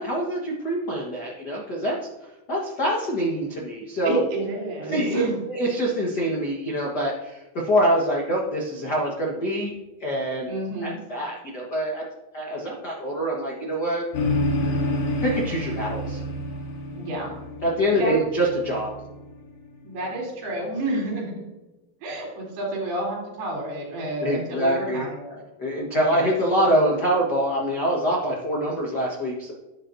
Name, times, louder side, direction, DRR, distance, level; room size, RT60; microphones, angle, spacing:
voice 1, 0.0-2.1 2.5-4.2 4.9-9.7 10.0-10.5 10.8-12.0 12.3-14.0 15.2-16.2 17.6-18.9 24.2-25.0 25.6-29.5, equal, 85° left, -3 dB, 0.9 m, -25 dB
voice 2, 4.0-5.4 10.5-11.0 17.0-17.3 17.9-18.2 19.8-21.4 22.0-25.4 25.9-26.4, right 1 dB, 80° right, -3 dB, 5.6 m, -30 dB
sound 1, 14.1-19.8, left 1 dB, 60° left, 2.9 m, -29 dB
11.0 x 9.4 x 2.7 m, 1.0 s
omnidirectional pair, 4.5 m